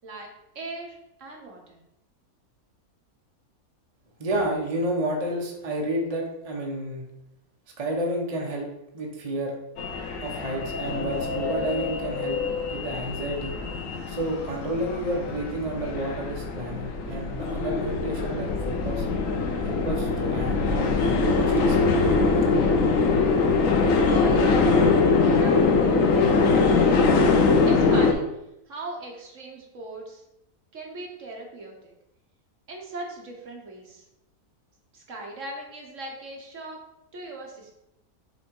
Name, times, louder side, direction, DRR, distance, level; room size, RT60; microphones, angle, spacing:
voice 1, 0.5-1.8 24.0-24.8 25.2-26.9 27.7-28.2 28.7-30.2 30.7-31.9 32.7-34.0 34.9-36.8 37.1-37.7, right 2 dB, 60° right, 0 dB, 1.4 m, -38 dB
voice 2, 4.2-7.0 7.8-8.7 8.9-9.5 10.2-12.4 12.7-13.6 14.1-19.1 19.6-22.1, right 1 dB, 25° right, 0 dB, 1.0 m, -30 dB
sound 1, 9.8-28.1, left 4 dB, 65° left, 1.2 m, -23 dB
7.0 x 3.2 x 4.7 m, 0.85 s
omnidirectional pair, 1.6 m